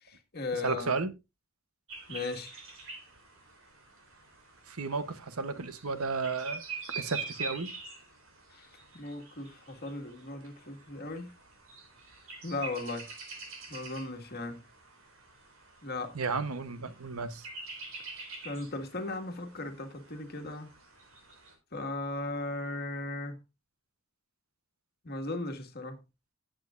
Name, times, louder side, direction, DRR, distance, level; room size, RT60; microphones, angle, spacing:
voice 1, 0.0-0.9 2.1-2.5 8.5-8.6 8.9-11.3 12.4-13.1 13.7-14.6 15.8-16.1 18.4-20.7 21.7-23.4 25.0-26.0, left 2 dB, 45° left, 1.8 m, -37 dB
voice 2, 0.6-1.2 4.7-6.6 6.9-7.7 16.1-17.5, right 4 dB, 90° right, 1.0 m, -33 dB
sound 1, 1.9-21.5, right 4 dB, 65° right, 3.6 m, -46 dB
17.5 x 7.8 x 2.5 m
head